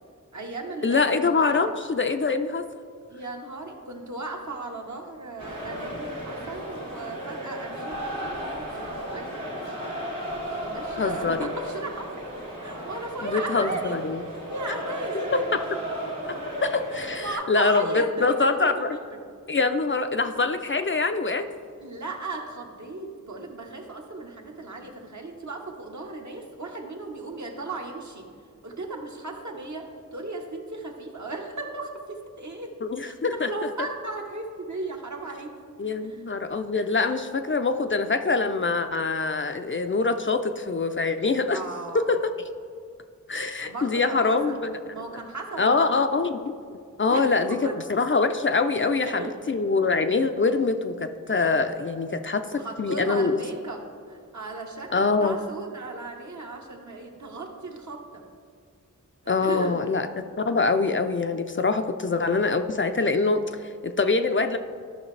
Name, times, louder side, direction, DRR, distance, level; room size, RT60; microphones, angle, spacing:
voice 1, 0.3-1.7 3.1-10.1 10.5-12.4 12.6-14.1 14.5-15.4 16.9-18.9 19.1-19.2 21.8-28.3 28.6-32.7 33.0-35.6 36.0-36.2 41.5-42.0 43.6-44.6 44.9-45.8 47.0-47.8 48.7-49.4 50.5-50.6 52.5-58.2 59.2-59.8, right 2 dB, 60° right, 1 dB, 1.1 m, -36 dB
voice 2, 0.8-2.6 11.0-11.5 13.2-14.2 16.3-19.0 19.5-21.4 32.8-33.7 35.8-41.6 41.9-42.2 43.3-45.0 45.6-46.4 47.0-53.4 54.9-55.4 59.3-64.6, left 4 dB, 40° left, 8 dB, 0.4 m, -24 dB
sound 1, 5.4-17.3, equal, 85° right, 1.9 m, -35 dB
12.0 x 5.8 x 3.2 m, 2.1 s
wide cardioid pair, 55°, 32 cm